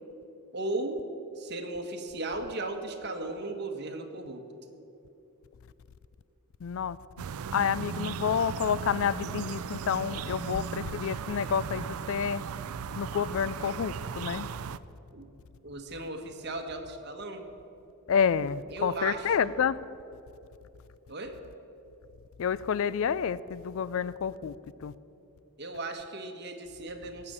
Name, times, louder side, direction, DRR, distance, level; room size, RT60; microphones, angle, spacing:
voice 1, 0.5-1.1 1.4-4.4 12.2-12.3 15.1-15.3 15.6-17.4 18.7-19.5 21.1-21.4 25.6-27.3, right 2 dB, 50° right, 1.4 m, -36 dB
voice 2, 6.6-7.0 7.5-12.4 13.0-14.5 18.1-19.8 22.4-24.5 24.8-24.9, left 7 dB, 65° left, 0.4 m, -29 dB
sound 1, 7.2-14.8, right 6 dB, 80° right, 0.4 m, -37 dB
17.0 x 6.8 x 8.7 m
head